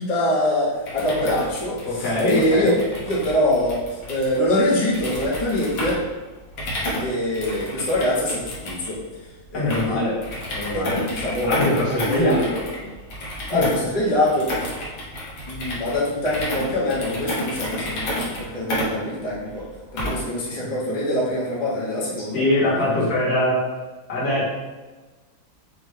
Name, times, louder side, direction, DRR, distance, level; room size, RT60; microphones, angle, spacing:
voice 1, 0.0-2.8 3.0-3.8 4.1-6.0 7.0-9.0 9.5-10.0 10.7-11.5 11.9-12.5 13.5-14.5 15.4-19.7 19.9-23.1, left 1 dB, 35° left, -7 dB, 0.5 m, -24 dB
sound 1, 0.8-20.4, equal, 60° left, 1.5 m, -31 dB
voice 2, 1.8-2.8 9.5-10.2 10.5-11.0 11.4-12.7 13.5-13.7 20.6-20.7 22.3-23.6 24.1-24.5, left 1 dB, 75° left, -9 dB, 2.2 m, -22 dB
5.9 x 2.2 x 3.2 m, 1.2 s
omnidirectional pair, 2.1 m